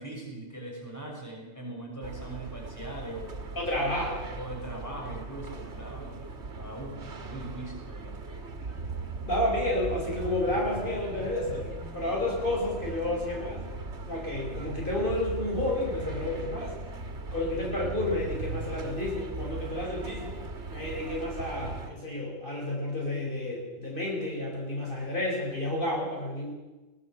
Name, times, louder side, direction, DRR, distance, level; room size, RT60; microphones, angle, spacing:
voice 1, 0.0-3.5 4.4-6.2 6.6-8.2, right 1 dB, 15° left, -2 dB, 6.4 m, -40 dB
sound 1, 2.0-21.9, right 3 dB, 75° right, 2.1 m, -38 dB
voice 2, 3.6-4.3 9.2-13.6 14.0-16.8 17.3-20.4 20.7-26.5, left 1 dB, 50° left, -2 dB, 5.8 m, -31 dB
22.0 x 19.0 x 7.6 m, 1.1 s
omnidirectional pair, 1.2 m